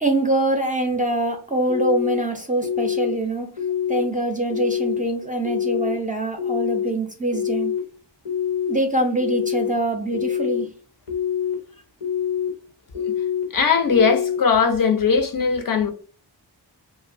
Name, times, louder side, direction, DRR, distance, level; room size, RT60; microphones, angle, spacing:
voice 1, 0.0-3.5 3.9-7.8 8.7-10.7, right 2 dB, 20° right, 0.4 m, -24 dB
sound 1, 1.7-2.2 2.6-3.1 3.6-4.0 4.5-5.0 5.4-5.9 6.4-6.9 7.3-7.8 8.2-8.7 9.2-9.7 10.1-10.6 11.1-11.5 12.0-12.5 12.9-13.4 13.9-14.4, left 9 dB, 90° left, 1.0 m, -25 dB
voice 2, 13.5-15.9, left 5 dB, 50° left, 0.5 m, -19 dB
2.9 x 2.0 x 2.5 m
wide cardioid pair, 120°, 42 cm